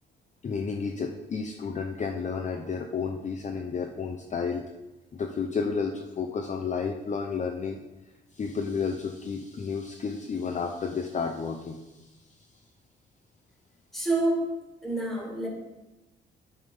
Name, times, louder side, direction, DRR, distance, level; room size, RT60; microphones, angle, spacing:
voice 1, 0.4-4.6 5.1-7.8 8.3-11.8, left 5 dB, 35° left, 2 dB, 0.6 m, -31 dB
voice 2, 13.9-14.5 14.8-15.5, right 2 dB, ahead, -1 dB, 2.0 m, -27 dB
9.1 x 3.6 x 5.4 m, 1.0 s
cardioid pair, 90°, 20 cm